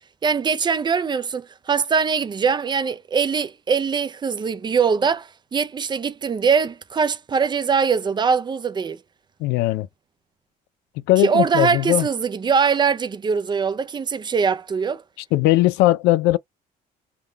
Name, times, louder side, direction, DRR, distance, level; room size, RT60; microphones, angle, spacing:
voice 1, 0.2-9.0 11.2-15.0, right 6 dB, 25° right, 0.4 m, -22 dB
voice 2, 9.4-9.9 11.1-12.1 15.3-16.4, left 16 dB, 90° left, 0.4 m, -18 dB
3.6 x 2.3 x 4.4 m
cardioid pair, 110°, 17 cm